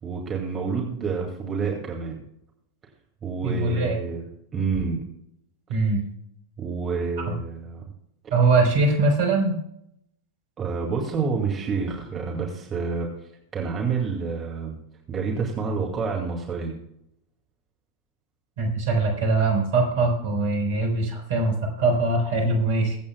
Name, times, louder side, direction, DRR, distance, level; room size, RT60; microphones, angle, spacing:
voice 1, 0.0-2.2 3.2-4.2 4.5-5.0 6.6-7.8 10.6-13.1 13.5-14.8 15.1-16.8, right 5 dB, 25° right, -1 dB, 2.2 m, -28 dB
voice 2, 3.4-4.0 5.7-6.0 7.3-7.4 8.3-9.6 18.6-23.0, right 3 dB, 55° right, 2 dB, 4.2 m, -22 dB
23.0 x 8.5 x 2.3 m, 0.75 s
figure-of-eight pair, 90°, 0 cm